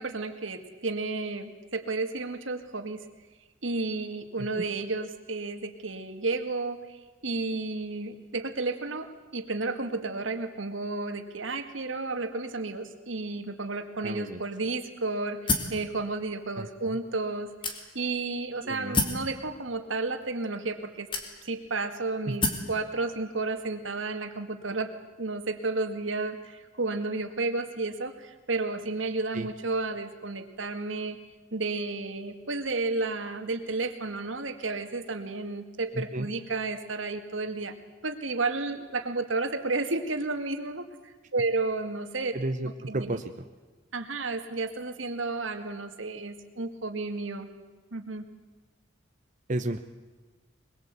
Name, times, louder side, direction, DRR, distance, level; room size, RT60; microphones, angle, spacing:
voice 1, 0.0-3.0 3.6-21.1 21.4-24.9 25.2-31.2 31.5-37.8 38.0-42.3 42.9-43.2 43.9-47.5 47.9-48.2, right 3 dB, 85° right, 7 dB, 2.1 m, -32 dB
voice 2, 14.0-14.4 16.6-17.0 18.7-19.0 22.3-22.4 29.3-29.5 35.9-36.3 42.3-43.4 49.5-49.8, right 1 dB, 40° right, 6 dB, 1.0 m, -32 dB
sound 1, 15.5-15.8 16.6-16.7 17.6-18.2 18.9-19.3 20.2-20.3 21.1-21.7 22.4-22.7, left 3 dB, 25° left, 2.5 m, -28 dB
22.5 x 21.5 x 8.3 m, 1.3 s
head